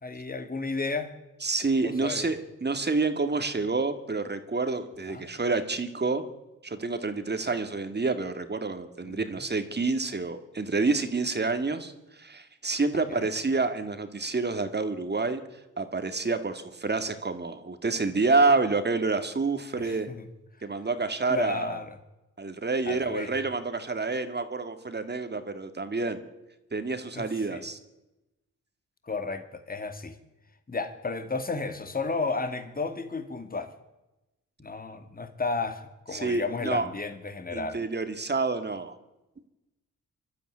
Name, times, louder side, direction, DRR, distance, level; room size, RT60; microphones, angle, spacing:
voice 1, 0.0-1.1 1.8-2.4 5.1-5.2 9.0-9.5 12.9-13.3 19.8-20.3 21.3-22.0 22.8-23.4 27.1-27.6 29.0-30.2 30.7-33.7 34.6-37.8, left 3 dB, 30° left, 9 dB, 2.3 m, -33 dB
voice 2, 1.4-6.2 6.6-15.4 15.8-20.1 20.6-21.8 22.4-26.2 26.7-27.8 36.1-36.9 37.5-39.0, right 3 dB, 30° right, 9 dB, 2.3 m, -28 dB
24.5 x 12.5 x 9.9 m, 0.99 s
cardioid pair, 80°, 32 cm